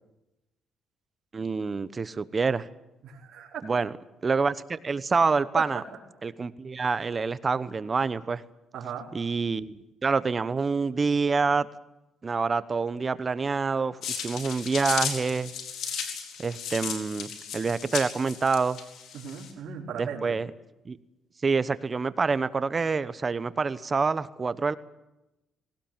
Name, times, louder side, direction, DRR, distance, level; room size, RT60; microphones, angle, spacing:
voice 1, 1.3-2.7 3.6-3.9 4.2-5.8 6.2-8.4 9.1-11.7 12.2-15.5 16.4-18.8 20.0-20.5 20.8-21.0 21.4-24.7, right 4 dB, 35° right, 15 dB, 1.0 m, -27 dB
voice 2, 3.0-3.6 5.5-5.6 8.7-9.1 19.1-20.4, right 8 dB, 65° right, -5 dB, 4.7 m, -36 dB
sound 1, 14.0-19.5, left 7 dB, 80° left, 4.3 m, -35 dB
20.0 x 18.5 x 8.9 m, 0.95 s
cardioid pair, 90°, 0 cm